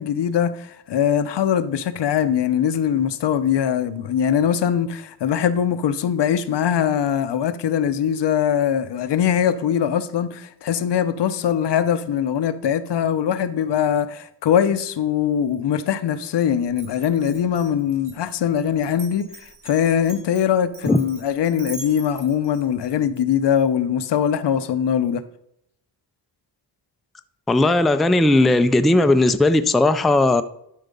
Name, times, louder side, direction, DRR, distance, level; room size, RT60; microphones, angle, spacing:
voice 1, 0.0-25.2, left 9 dB, 80° left, 0.8 m, -22 dB
Glass, 16.7-23.2, right 3 dB, 50° right, 2.6 m, -42 dB
voice 2, 27.5-30.4, left 2 dB, ahead, 0.3 m, -17 dB
12.0 x 4.6 x 5.3 m
wide cardioid pair, 140°, 41 cm